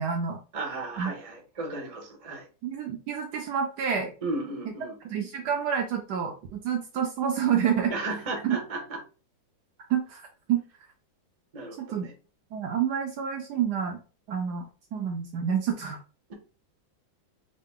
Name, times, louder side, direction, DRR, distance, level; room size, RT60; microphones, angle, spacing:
voice 1, 0.0-0.4 1.0-1.1 2.6-4.1 5.0-7.9 8.4-8.6 9.9-10.2 10.5-10.6 11.8-12.1 12.5-14.0 14.3-14.6 14.9-16.0, right 8 dB, 70° right, 3 dB, 1.0 m, -28 dB
voice 2, 0.5-2.5 4.2-4.9 7.9-9.0 11.5-12.1, right 2 dB, 40° right, 0 dB, 0.5 m, -34 dB
3.7 x 2.1 x 3.6 m, 0.34 s
omnidirectional pair, 2.1 m